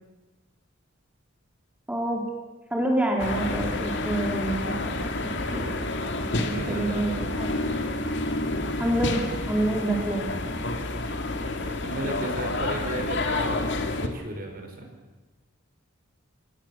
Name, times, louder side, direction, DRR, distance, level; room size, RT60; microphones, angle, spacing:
voice 1, 1.9-2.2 2.7-7.5 8.8-10.4, right 1 dB, 5° right, -1 dB, 2.9 m, -28 dB
sound 1, 3.2-14.1, left 2 dB, 55° left, 2.3 m, -29 dB
voice 2, 6.3-7.3 11.6-14.9, right 1 dB, 45° right, 4 dB, 4.8 m, -35 dB
29.5 x 17.0 x 7.2 m, 1.2 s
head